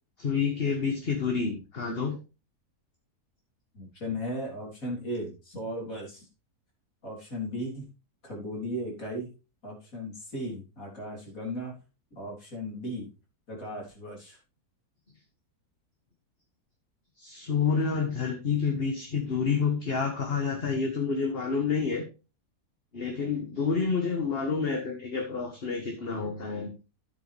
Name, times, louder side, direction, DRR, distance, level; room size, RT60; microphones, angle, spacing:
voice 1, 0.2-2.2 17.2-22.1 22.9-26.7, left 5 dB, 40° left, 3 dB, 1.6 m, -28 dB
voice 2, 3.7-6.2 7.0-7.9 8.2-9.3 9.6-11.8 12.2-13.1 13.5-14.4, equal, 55° left, -1 dB, 4.1 m, -36 dB
10.5 x 8.5 x 3.4 m, 0.31 s
omnidirectional pair, 1.7 m